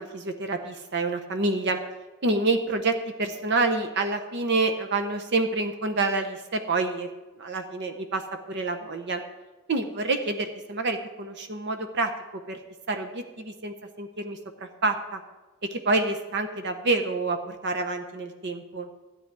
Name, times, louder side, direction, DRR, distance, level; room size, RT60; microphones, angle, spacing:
voice 1, 0.0-1.8 2.2-7.1 7.4-9.2 9.7-12.6 12.9-15.2 15.7-18.9, right 3 dB, 55° right, 6 dB, 0.8 m, -28 dB
13.0 x 9.3 x 4.7 m, 1.2 s
head